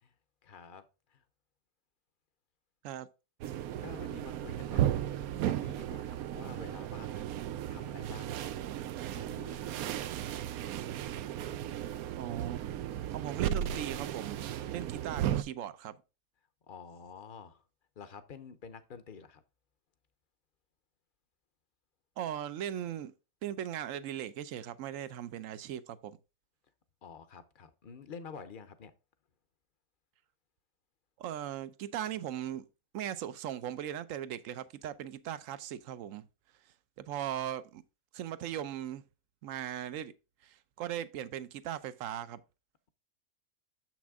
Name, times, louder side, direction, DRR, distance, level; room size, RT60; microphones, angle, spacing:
voice 1, 0.4-1.2 3.8-5.2 5.4-7.2 7.7-8.5 9.1-9.7 16.7-17.6 18.0-19.4 27.0-28.9, left 6 dB, 45° left, 0.7 m, -49 dB
sound 1, 3.4-15.4, right 11 dB, 90° right, 1.1 m, -35 dB
voice 2, 12.2-12.6 13.1-16.0 22.2-23.1 23.4-26.2 31.2-32.7 32.9-36.3 37.0-37.8 38.1-39.0 39.4-40.1 40.4-42.4, right 10 dB, 70° right, 1.0 m, -38 dB
7.3 x 6.1 x 3.5 m
omnidirectional pair, 1.5 m